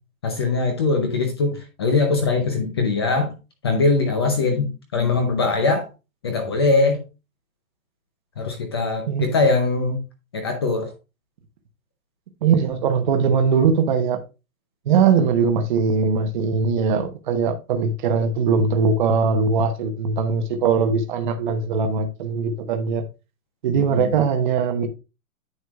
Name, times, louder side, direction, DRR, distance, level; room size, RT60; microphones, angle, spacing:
voice 1, 0.2-3.3 3.6-5.9 6.2-7.0 8.4-10.0 10.3-10.9 23.8-24.1, left 3 dB, 20° left, 0.6 m, -21 dB
voice 2, 12.4-14.2 14.9-23.0 23.6-24.9, right 5 dB, 35° right, 0.9 m, -20 dB
9.6 x 6.3 x 2.3 m
hypercardioid pair, 165°, 43 cm